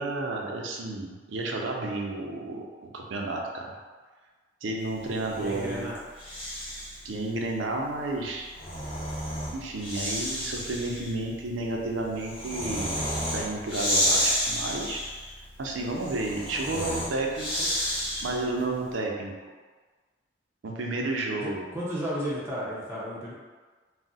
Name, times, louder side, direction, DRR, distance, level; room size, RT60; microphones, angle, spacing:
voice 1, 0.0-3.7 4.6-5.9 7.0-8.5 9.5-13.0 13.3-15.0 15.6-17.7 18.2-19.3 20.6-21.7, right 2 dB, 90° right, 0 dB, 0.5 m, -31 dB
Breathing, 5.1-7.1 8.3-18.6, equal, 30° left, 0.8 m, -31 dB
voice 2, 5.3-6.0 21.4-23.3, equal, 15° right, -8 dB, 0.5 m, -33 dB
2.4 x 2.0 x 3.9 m, 1.4 s
head